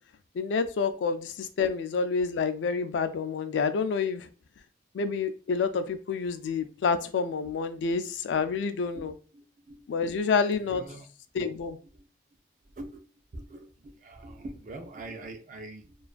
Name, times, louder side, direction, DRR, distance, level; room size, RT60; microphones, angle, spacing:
voice 1, 0.4-4.3 4.9-9.1 9.9-10.8 11.3-11.8, left 5 dB, 75° left, 0.3 m, -28 dB
voice 2, 8.9-9.9 10.6-11.1 12.0-12.1 12.8-13.0 13.3-16.0, right 2 dB, 40° right, 0.4 m, -43 dB
2.4 x 2.3 x 2.3 m
head